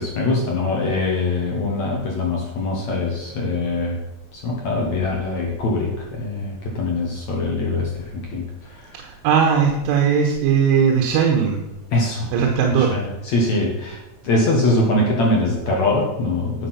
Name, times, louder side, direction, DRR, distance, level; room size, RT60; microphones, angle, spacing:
voice 1, 0.0-4.0 4.3-9.0 11.9-12.3 12.8-16.7, left 2 dB, 70° left, -2 dB, 1.7 m, -23 dB
voice 2, 8.9-11.6 12.3-13.0, right 7 dB, 80° right, 2 dB, 3.6 m, -18 dB
11.0 x 7.6 x 5.7 m, 0.97 s
omnidirectional pair, 5.7 m